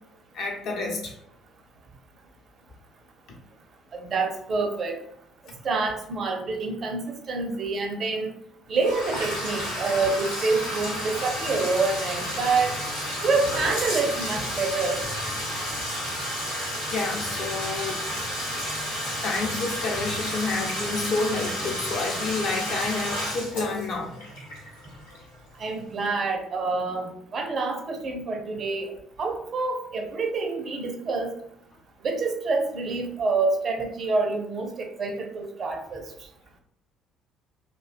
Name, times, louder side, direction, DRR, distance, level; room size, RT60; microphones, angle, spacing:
voice 1, 0.3-1.1 16.9-18.0 19.2-24.1, left 3 dB, 55° left, -1 dB, 0.6 m, -29 dB
voice 2, 4.0-5.0 5.6-8.3 8.7-12.8 13.2-15.0 25.6-31.3 32.0-36.0, right 3 dB, 45° right, 4 dB, 0.4 m, -27 dB
Bathtub (filling or washing), 8.8-25.5, equal, 85° left, 0.9 m, -31 dB
2.4 x 2.1 x 2.3 m, 0.73 s
figure-of-eight pair, 50°, 0 cm